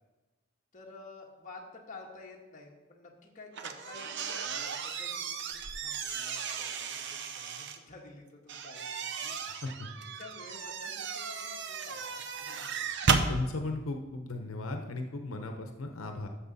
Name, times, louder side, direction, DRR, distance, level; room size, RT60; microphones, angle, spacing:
voice 1, 0.7-9.4 10.0-13.0, left 3 dB, 40° left, -1 dB, 1.6 m, -51 dB
sound 1, 3.5-7.8 8.5-13.3, right 5 dB, 60° right, 0.7 m, -34 dB
voice 2, 13.3-16.3, left 2 dB, 90° left, 5 dB, 0.8 m, -36 dB
12.5 x 6.7 x 4.0 m, 1.2 s
head